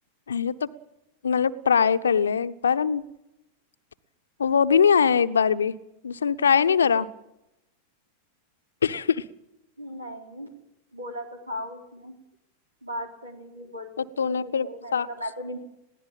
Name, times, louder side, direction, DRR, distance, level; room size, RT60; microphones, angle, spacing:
voice 1, 0.3-0.7 1.2-3.0 4.4-5.7 6.0-7.1 8.8-9.2 14.2-15.1, left 7 dB, 70° left, 13 dB, 0.8 m, -22 dB
voice 2, 9.8-10.5 10.9-12.2 12.8-15.6, equal, 80° right, 5 dB, 3.5 m, -37 dB
21.0 x 16.0 x 8.9 m, 0.88 s
figure-of-eight pair, 90°, 0 cm